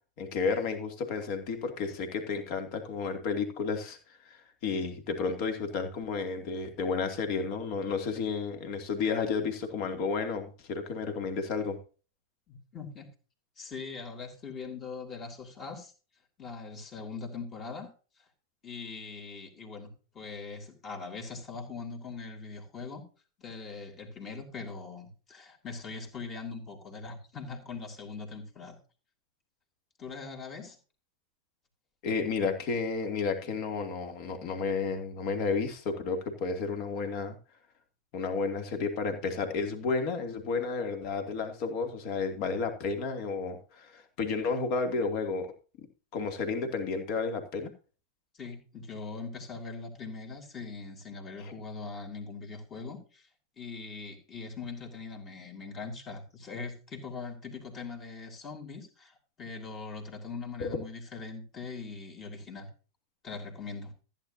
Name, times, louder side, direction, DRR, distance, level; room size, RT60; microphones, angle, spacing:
voice 1, 0.2-11.8 32.0-37.4 38.1-45.9 46.1-47.7 51.4-51.5 60.6-60.7, left 4 dB, 45° left, 6 dB, 2.6 m, -32 dB
voice 2, 12.5-13.1 13.6-15.9 16.4-17.9 18.2-18.3 18.6-23.0 23.4-28.8 30.0-30.8 48.3-53.3 53.6-62.7 63.2-63.9, left 4 dB, 25° left, 5 dB, 3.4 m, -41 dB
15.5 x 9.5 x 2.7 m, 0.35 s
figure-of-eight pair, 90°, 0 cm